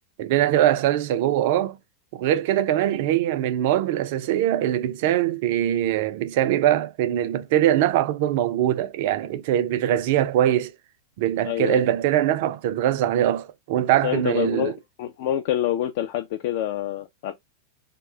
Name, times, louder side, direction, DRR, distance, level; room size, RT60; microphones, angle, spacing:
voice 1, 0.2-1.8 2.1-10.7 11.2-14.7, right 12 dB, 50° right, 0.3 m, -22 dB
voice 2, 11.4-11.8 14.0-17.3, left 12 dB, 50° left, 0.3 m, -27 dB
3.0 x 2.1 x 3.2 m
figure-of-eight pair, 90°, 0 cm